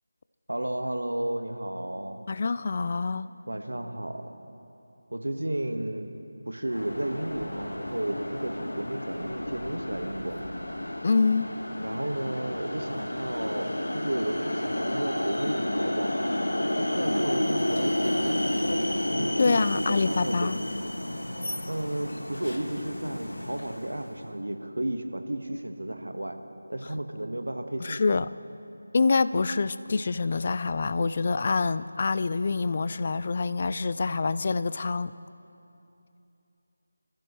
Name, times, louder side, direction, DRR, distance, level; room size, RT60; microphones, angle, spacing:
voice 1, 0.5-2.2 3.5-4.2 5.1-6.1 6.5-10.4 11.8-16.3 16.8-18.6 19.1-20.6 21.6-26.4 26.7-28.0, right 1 dB, 85° right, 6 dB, 1.3 m, -33 dB
voice 2, 2.3-3.3 11.0-11.5 19.4-20.6 27.8-28.3 28.9-35.1, left 4 dB, 40° left, 15 dB, 0.4 m, -26 dB
sound 1, 6.7-24.2, left 1 dB, 85° left, 1.3 m, -31 dB
28.0 x 14.0 x 3.1 m, 2.8 s
figure-of-eight pair, 165°, 0 cm